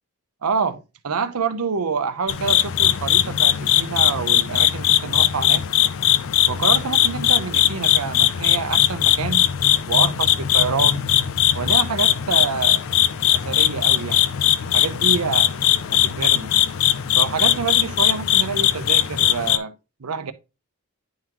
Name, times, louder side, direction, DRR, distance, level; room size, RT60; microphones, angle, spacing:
voice 1, 0.4-5.6 6.5-9.4 9.9-11.0 11.5-12.8 13.3-14.2 14.7-15.6 15.9-16.5 17.2-19.7 20.0-20.3, right 5 dB, 80° right, 0.7 m, -27 dB
sound 1, 2.3-19.6, left 12 dB, 65° left, 0.4 m, -19 dB
10.5 x 3.6 x 3.0 m
head